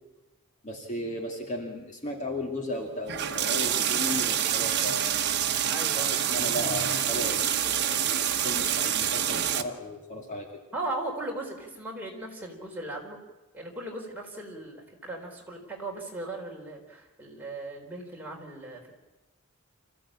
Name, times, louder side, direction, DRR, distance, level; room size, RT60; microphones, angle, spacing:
voice 1, 0.6-5.2 5.9-10.5, equal, 35° left, 1 dB, 2.4 m, -35 dB
sound 1, 3.1-9.6, right 9 dB, 50° right, 1.2 m, -27 dB
voice 2, 5.7-6.2 10.7-13.2 13.5-14.8 15.0-18.9, right 2 dB, 10° right, -2 dB, 4.2 m, -37 dB
26.5 x 15.5 x 8.7 m, 1.1 s
head